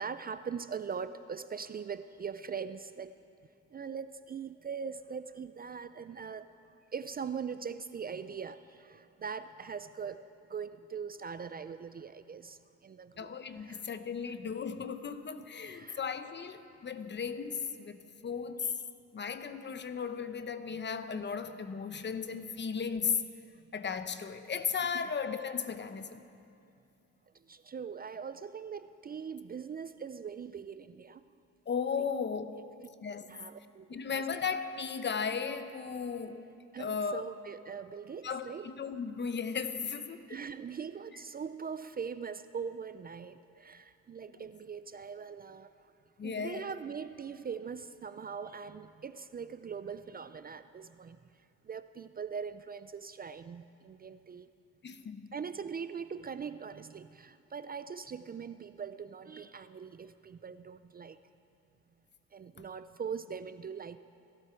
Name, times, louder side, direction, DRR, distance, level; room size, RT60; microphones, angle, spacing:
voice 1, 0.0-3.1 3.7-13.3 13.5-13.8 15.4-16.0 18.6-18.7 19.5-19.6 21.9-22.0 24.9-25.1 27.3-31.3 32.5-32.6 33.2-34.2 36.7-38.7 40.3-45.9 46.2-54.5 55.3-61.2 62.3-64.0, right 6 dB, 30° right, 0.4 m, -42 dB
voice 2, 13.2-18.7 19.1-23.2 23.7-26.2 31.7-32.7 33.0-33.3 33.9-36.4 36.8-37.2 38.2-40.3 46.2-46.6 54.8-55.3, left 6 dB, 35° left, 0.8 m, -36 dB
18.0 x 16.0 x 4.4 m
cardioid pair, 90°, 30 cm